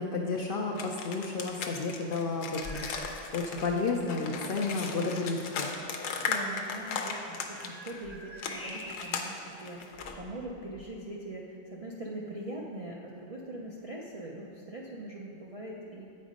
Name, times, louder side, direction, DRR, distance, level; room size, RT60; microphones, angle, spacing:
voice 1, 0.0-5.7, left 3 dB, 60° left, 0 dB, 0.6 m, -32 dB
sound 1, 0.8-8.0 8.4-10.1, left 5 dB, 90° left, 1.0 m, -37 dB
sound 2, 2.6-3.3 3.6-3.9 4.6-4.7 7.1-9.4 9.9-11.0, left 1 dB, 15° left, 0.5 m, -45 dB
voice 2, 6.2-16.1, right 1 dB, 50° right, -3 dB, 0.4 m, -42 dB
8.1 x 4.3 x 5.1 m, 2.7 s
omnidirectional pair, 1.3 m